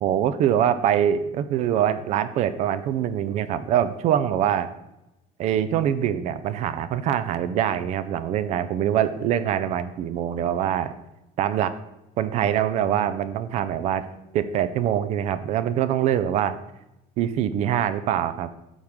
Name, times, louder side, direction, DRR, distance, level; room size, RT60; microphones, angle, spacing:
voice 1, 0.0-4.7 5.4-10.9 11.4-11.8 12.2-14.1 14.3-16.6 17.2-18.5, right 10 dB, 45° right, 13 dB, 0.4 m, -24 dB
8.8 x 6.4 x 3.6 m, 0.91 s
cardioid pair, 175°, 16 cm